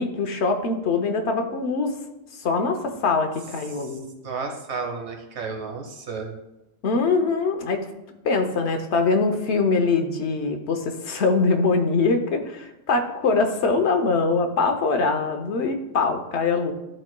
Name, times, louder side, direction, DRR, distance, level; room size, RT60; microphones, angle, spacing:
voice 1, 0.0-1.9 2.3-4.1 6.8-7.9 8.2-16.7, left 4 dB, 85° left, 5 dB, 1.1 m, -23 dB
voice 2, 3.7-6.4, right 4 dB, 90° right, 3 dB, 1.2 m, -33 dB
12.0 x 4.3 x 2.2 m, 0.94 s
omnidirectional pair, 1.1 m